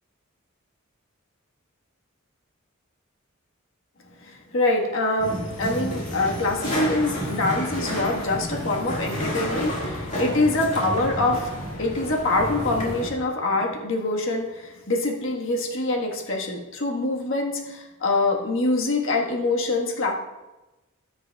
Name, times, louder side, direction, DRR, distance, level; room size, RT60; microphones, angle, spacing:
voice 1, 4.2-11.5 11.8-20.1, left 2 dB, 65° left, 0 dB, 1.5 m, -25 dB
sound 1, 5.2-13.1, equal, 35° left, 2.0 m, -30 dB
18.0 x 6.7 x 2.4 m, 1.1 s
head